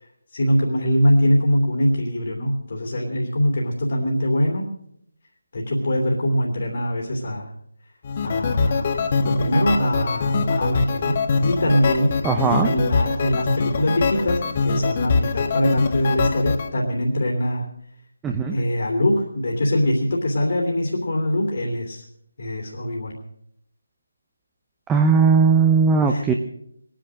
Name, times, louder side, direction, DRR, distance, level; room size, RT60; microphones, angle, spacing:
voice 1, 0.3-4.7 5.5-7.5 8.2-8.9 9.2-12.2 12.6-17.7 18.5-22.0 22.4-23.1 26.0-26.2, equal, 50° left, 0 dB, 3.0 m, -22 dB
sound 1, 8.0-16.7, left 4 dB, 30° left, 1.0 m, -23 dB
voice 2, 12.2-12.7 18.2-18.6 24.9-26.3, right 5 dB, 10° right, 3 dB, 0.7 m, -18 dB
20.0 x 10.0 x 6.4 m, 0.73 s
figure-of-eight pair, 155°, 0 cm